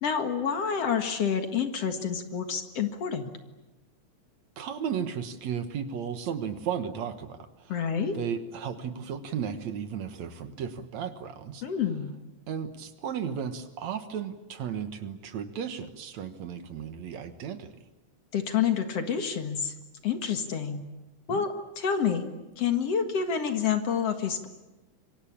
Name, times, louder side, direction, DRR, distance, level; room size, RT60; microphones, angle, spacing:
voice 1, 0.0-3.3 7.7-8.2 11.6-12.1 18.3-19.7 20.0-20.8 21.3-22.3 22.6-24.5, left 7 dB, 55° left, 7 dB, 2.6 m, -28 dB
voice 2, 4.6-7.7 8.1-11.6 12.5-17.7 21.3-21.4, right 7 dB, 65° right, 9 dB, 2.5 m, -34 dB
26.5 x 24.0 x 8.6 m, 1.1 s
omnidirectional pair, 3.6 m